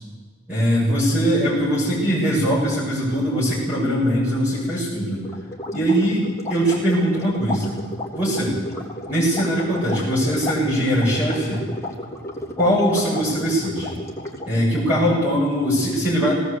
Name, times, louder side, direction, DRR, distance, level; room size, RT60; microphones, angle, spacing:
voice 1, 0.5-5.2 5.7-6.2 6.5-7.8 8.1-8.6 9.1-11.6 12.6-14.0 14.4-16.3, equal, 10° right, -7 dB, 7.4 m, -21 dB
sound 1, 5.2-14.7, left 1 dB, 15° left, 3.6 m, -33 dB
18.5 x 18.5 x 8.4 m, 1.4 s
head